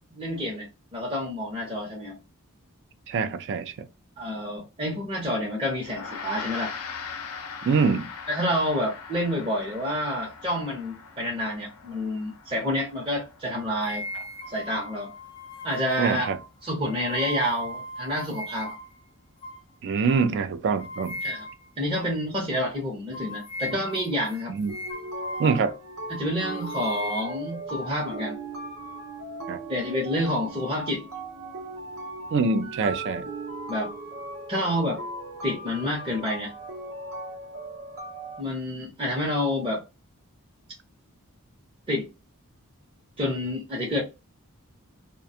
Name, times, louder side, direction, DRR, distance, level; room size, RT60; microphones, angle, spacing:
voice 1, 0.1-2.2 4.2-6.7 8.3-14.0 14.5-15.1 15.6-16.3 16.6-18.7 21.2-21.5 21.8-24.6 26.1-28.4 29.7-31.0 33.7-33.9 34.5-35.0 35.4-36.5 38.4-39.8 41.9-42.1 43.2-44.0, left 1 dB, 25° right, 0.7 m, -28 dB
voice 2, 3.1-3.9 7.7-8.1 16.0-16.4 19.8-21.2 24.5-24.8 25.4-25.7 29.5-29.6 32.3-33.3, right 5 dB, 50° right, 0.3 m, -24 dB
Gong, 5.8-15.5, left 5 dB, 85° left, 0.6 m, -41 dB
sound 1, 13.8-18.9 19.4-19.6 20.1-20.3 20.8-21.7 21.9-22.1 22.5-22.7 23.1-25.8 26.1-27.9, left 1 dB, 25° left, 0.4 m, -38 dB
sound 2, 24.7-38.4, right 2 dB, 70° right, 0.7 m, -38 dB
2.4 x 2.2 x 2.7 m
head